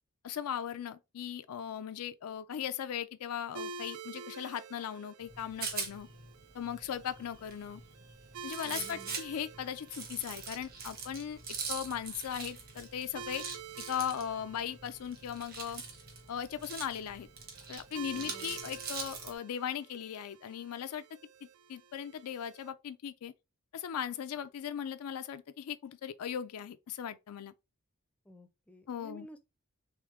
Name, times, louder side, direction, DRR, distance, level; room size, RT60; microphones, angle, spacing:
voice 1, 0.2-6.1 6.5-7.8 8.4-11.4 11.7-13.4 13.9-15.8 16.3-17.3 17.7-21.0 21.4-23.3 23.7-27.5 28.9-29.3, left 9 dB, 85° left, 0.4 m, -38 dB
sound 1, 3.5-22.7, right 5 dB, 80° right, 0.4 m, -50 dB
Rattle, 5.2-19.3, right 5 dB, 45° right, 1.1 m, -43 dB
voice 2, 8.6-9.2 18.1-18.6 28.2-29.4, equal, 5° left, 0.4 m, -52 dB
3.6 x 3.4 x 3.2 m
head